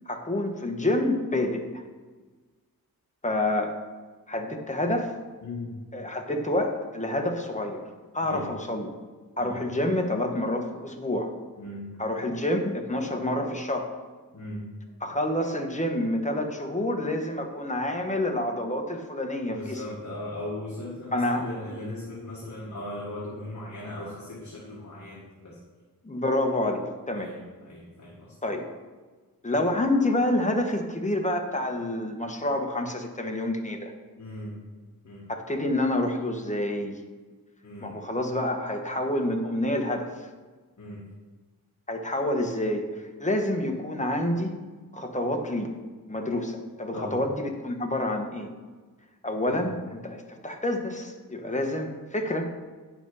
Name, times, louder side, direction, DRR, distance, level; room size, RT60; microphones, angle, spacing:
voice 1, 0.1-1.8 3.2-3.7 4.3-5.1 5.9-7.8 8.1-8.9 9.4-11.3 12.0-13.9 15.0-19.8 21.1-21.5 26.0-27.3 28.4-28.7 29.4-33.9 35.3-37.0 37.8-40.3 41.9-42.9 43.2-44.6 44.9-45.7 46.1-48.5 49.2-52.5, left 1 dB, 20° left, 3 dB, 1.1 m, -28 dB
voice 2, 5.4-5.7 8.2-8.4 9.4-9.6 11.6-11.9 14.3-14.6 19.5-25.6 27.1-28.4 34.2-34.5 35.0-35.3 37.6-37.9 40.8-41.0 46.9-47.2 49.4-49.6, left 1 dB, 50° left, -4 dB, 1.6 m, -38 dB
9.3 x 5.9 x 5.4 m, 1.4 s
wide cardioid pair, 105°, 36 cm